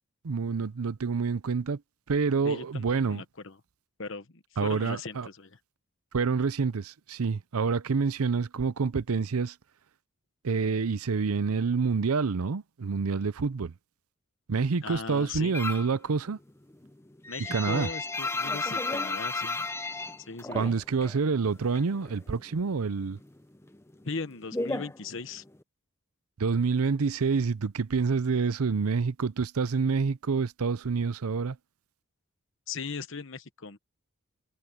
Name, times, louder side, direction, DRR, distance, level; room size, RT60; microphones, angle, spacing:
voice 1, 0.2-1.8 2.1-3.2 4.6-5.3 6.1-9.5 10.4-13.7 14.5-16.4 17.5-17.9 20.5-23.2 26.4-31.6, right 5 dB, 80° right, 0.6 m, -27 dB
voice 2, 2.4-3.6 4.0-5.6 14.8-15.7 17.3-19.7 20.3-20.8 24.0-25.4 32.7-33.8, left 4 dB, 60° left, 1.1 m, -38 dB
sound 1, 15.5-16.0 16.3-21.2 21.5-22.5 22.8-25.6, left 3 dB, 10° left, 0.6 m, -34 dB
head